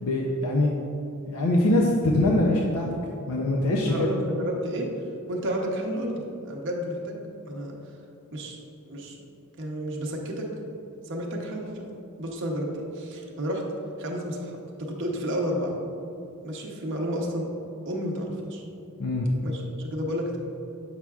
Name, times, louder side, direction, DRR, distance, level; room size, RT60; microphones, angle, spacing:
voice 1, 0.0-0.7 1.3-2.9 3.3-4.1 19.0-19.3, left 1 dB, 70° left, -1 dB, 0.5 m, -23 dB
voice 2, 3.8-4.9 5.3-7.2 7.5-7.7 8.3-8.6 8.9-9.2 9.6-10.5 11.1-13.6 14.0-15.8 16.4-17.5 17.8-18.6 19.4-20.4, equal, 55° right, -1 dB, 0.8 m, -31 dB
7.4 x 5.7 x 2.3 m, 2.8 s
head